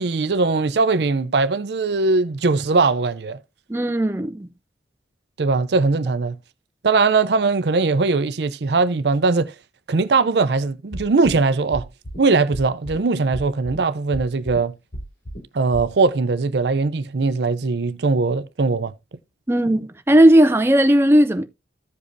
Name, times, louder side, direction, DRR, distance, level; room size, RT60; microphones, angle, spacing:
voice 1, 0.0-3.4 5.4-6.4 6.8-9.5 9.9-11.9 12.2-14.8 15.5-18.9, right 3 dB, 75° right, 0.5 m, -20 dB
voice 2, 3.7-4.5 19.5-21.4, right 1 dB, 15° right, 0.5 m, -16 dB
sound 1, 10.9-11.4 11.7-12.2 12.5-13.0 13.3-13.8 14.1-14.6 14.9-15.4 15.7-15.8, equal, 70° left, 3.4 m, -32 dB
15.0 x 5.1 x 2.6 m
head